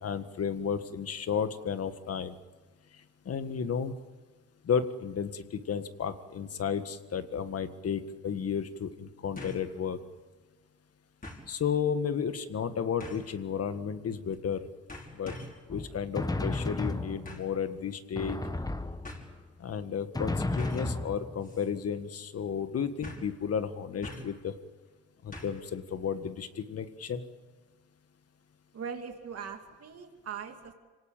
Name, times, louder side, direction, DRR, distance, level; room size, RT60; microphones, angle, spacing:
voice 1, 0.0-2.3 3.2-3.9 4.6-10.0 11.5-14.7 15.1-15.4 15.7-18.4 19.6-24.5 25.2-27.2, left 7 dB, 50° left, 10 dB, 1.7 m, -33 dB
sound 1, 9.4-9.7 10.1-10.2 11.2-11.5 13.0-13.3 14.3-14.5 14.9-15.6 17.2-17.6 18.5-18.6 19.0-19.3 20.6-20.9 21.4-21.7 21.9-22.0 23.0-23.4 24.0-24.4 25.3-25.7 26.0-26.1, left 1 dB, 30° left, 5.9 m, -44 dB
Drum, 15.7-17.6 18.2-19.5 20.1-21.7, left 2 dB, 10° left, 1.3 m, -33 dB
voice 2, 28.7-30.7, right 6 dB, 55° right, 4 dB, 2.7 m, -40 dB
26.0 x 18.0 x 9.1 m, 1.4 s
cardioid pair, 90°, 30 cm